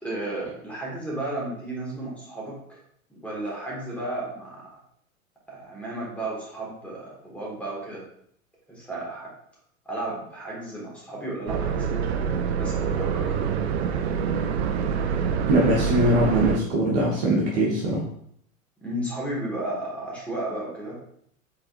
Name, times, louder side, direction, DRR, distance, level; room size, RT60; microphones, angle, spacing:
voice 1, 0.0-2.8 3.1-4.7 5.5-8.0 8.7-9.3 9.9-12.1 12.6-13.3 18.8-21.0, right 1 dB, 5° left, -5 dB, 1.8 m, -33 dB
sound 1, 11.5-16.6, right 7 dB, 50° right, 0.5 m, -26 dB
voice 2, 15.5-18.0, right 1 dB, 35° right, -3 dB, 1.1 m, -22 dB
4.6 x 3.9 x 2.5 m, 0.67 s
figure-of-eight pair, 95°, 41 cm